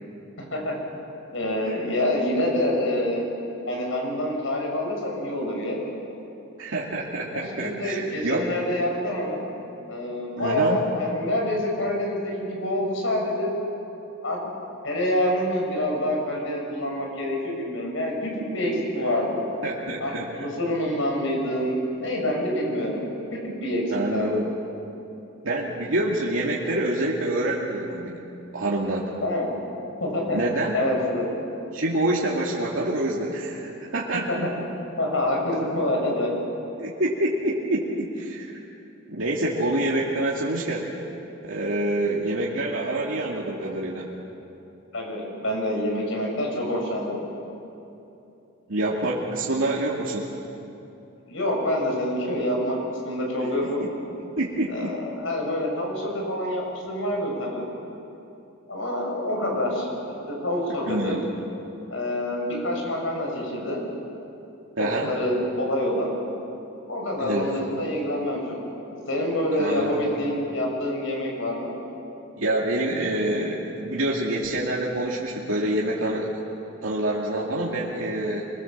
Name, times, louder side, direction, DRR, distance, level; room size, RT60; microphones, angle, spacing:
voice 1, 0.4-0.7 1.3-3.3 3.7-5.8 7.3-9.5 9.9-13.5 14.2-14.4 14.8-19.5 20.0-23.0 23.3-23.8 24.1-24.3 29.2-29.5 30.0-30.4 30.7-31.3 34.3-34.4 35.0-36.3 44.9-47.2 51.3-53.8 54.7-57.7 58.7-59.9 60.3-61.1 61.9-63.9 64.8-66.2 66.9-68.6 69.1-71.8, left 1 dB, 75° left, 0 dB, 6.3 m, -26 dB
voice 2, 6.6-8.5 10.4-10.8 19.6-20.3 23.9-24.5 25.4-28.2 28.5-29.1 30.3-30.7 31.7-34.5 36.8-38.5 39.1-40.9 41.4-44.1 48.7-50.3 54.4-55.0 60.8-61.2 64.8-65.1 67.2-67.6 69.6-70.0 72.4-76.3 76.8-78.5, right 1 dB, 85° right, -4 dB, 2.5 m, -26 dB
26.5 x 21.0 x 7.4 m, 2.9 s
head